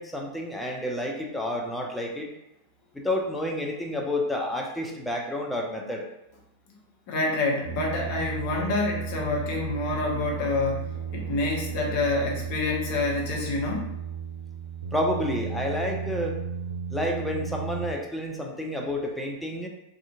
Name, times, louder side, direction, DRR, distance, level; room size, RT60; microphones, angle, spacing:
voice 1, 0.0-2.3 2.9-6.1 14.9-16.4 16.9-19.7, left 1 dB, 5° left, 0 dB, 0.5 m, -30 dB
voice 2, 7.1-13.9, left 3 dB, 45° left, -1 dB, 0.6 m, -27 dB
sound 1, 7.6-17.9, right 7 dB, 80° right, 0.3 m, -34 dB
2.7 x 2.4 x 2.4 m, 0.85 s
figure-of-eight pair, 90°, 0 cm